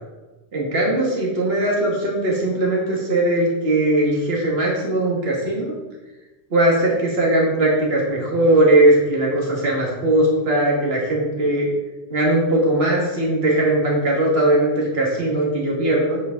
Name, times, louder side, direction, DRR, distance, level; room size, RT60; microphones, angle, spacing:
voice 1, 0.5-5.7 6.5-11.7 12.1-16.2, right 1 dB, 65° right, -3 dB, 2.1 m, -19 dB
8.4 x 7.8 x 3.8 m, 1.1 s
omnidirectional pair, 1.1 m